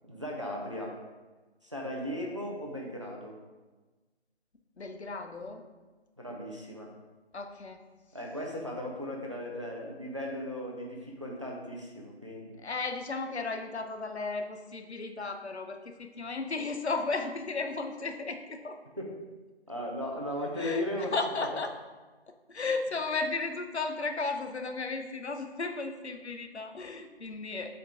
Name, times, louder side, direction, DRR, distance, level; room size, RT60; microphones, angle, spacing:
voice 1, 0.1-0.9 1.6-3.4 6.2-6.9 8.1-12.6 19.0-19.1 19.7-21.1, left 1 dB, 30° right, -1 dB, 0.6 m, -37 dB
voice 2, 4.8-5.6 7.3-7.8 12.6-18.8 20.6-21.7 22.5-27.7, left 3 dB, 75° left, 5 dB, 0.8 m, -34 dB
7.7 x 3.7 x 3.7 m, 1.2 s
figure-of-eight pair, 170°, 33 cm